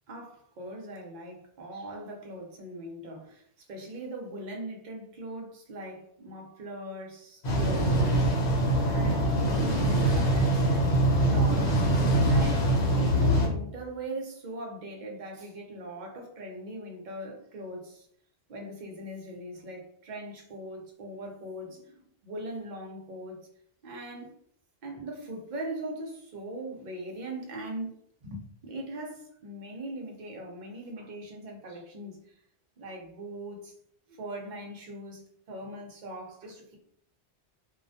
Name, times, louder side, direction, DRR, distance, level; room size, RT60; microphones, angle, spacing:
voice 1, 0.1-8.3 8.9-11.8 12.3-18.1 18.5-23.4 23.8-24.3 24.8-27.9 28.2-32.2 32.8-33.7 34.1-36.8, right 1 dB, 50° right, 1 dB, 0.6 m, -40 dB
sound 1, 7.4-13.5, right 1 dB, 80° left, 1.0 m, -24 dB
2.3 x 2.1 x 2.6 m, 0.66 s
omnidirectional pair, 1.1 m